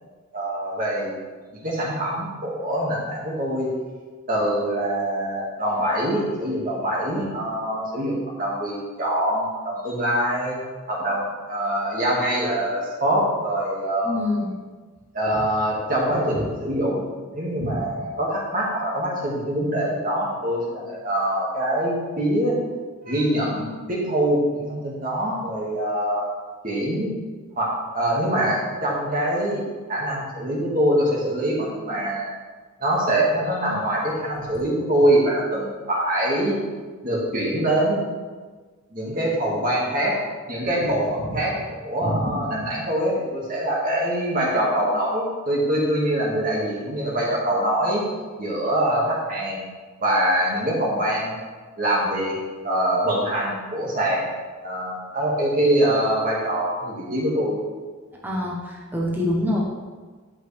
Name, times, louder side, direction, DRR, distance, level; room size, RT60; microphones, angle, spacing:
voice 1, 0.3-1.1 1.5-3.7 4.3-10.6 10.9-14.2 15.1-17.1 17.3-22.6 23.0-26.3 26.6-27.1 27.6-29.6 29.9-32.3 32.8-36.6 37.0-38.0 38.9-40.2 40.5-48.0 48.4-49.6 50.0-51.4 51.8-52.4 52.6-54.3 54.6-57.6, right 1 dB, 40° right, -4 dB, 2.1 m, -24 dB
voice 2, 14.0-14.5 58.2-59.6, left 1 dB, 10° right, -3 dB, 1.0 m, -25 dB
11.0 x 5.2 x 3.5 m, 1.4 s
head